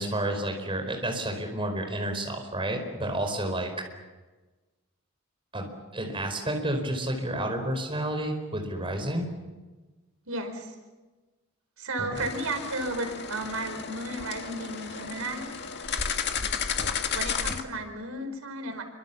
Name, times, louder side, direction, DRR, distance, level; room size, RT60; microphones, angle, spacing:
voice 1, 0.0-3.7 5.5-9.3 12.0-12.3, right 1 dB, 25° right, 4 dB, 4.8 m, -30 dB
voice 2, 10.3-10.7 11.8-15.5 17.1-18.8, right 2 dB, 80° right, 7 dB, 4.7 m, -33 dB
sound 1, 12.2-17.6, left 6 dB, 50° left, 1.9 m, -33 dB
28.0 x 25.5 x 7.3 m, 1.2 s
head